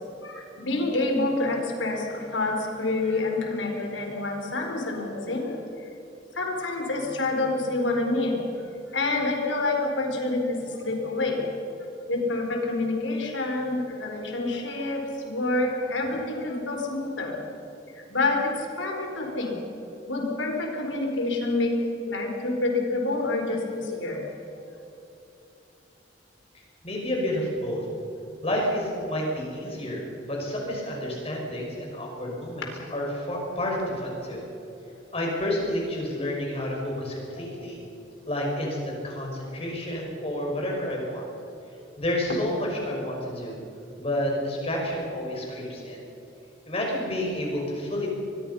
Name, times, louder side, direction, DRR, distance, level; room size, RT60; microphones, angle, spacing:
voice 1, 0.2-5.5 6.3-8.4 8.9-11.5 12.1-17.4 18.1-19.6 20.1-21.7 22.1-24.2, left 2 dB, 85° left, 2 dB, 4.5 m, -27 dB
voice 2, 26.8-27.9 28.4-34.4 35.1-37.8 38.3-41.2 42.0-43.6 44.0-46.0 46.7-48.1, left 1 dB, 30° left, -1 dB, 5.9 m, -30 dB
23.5 x 21.5 x 5.7 m, 2.9 s
head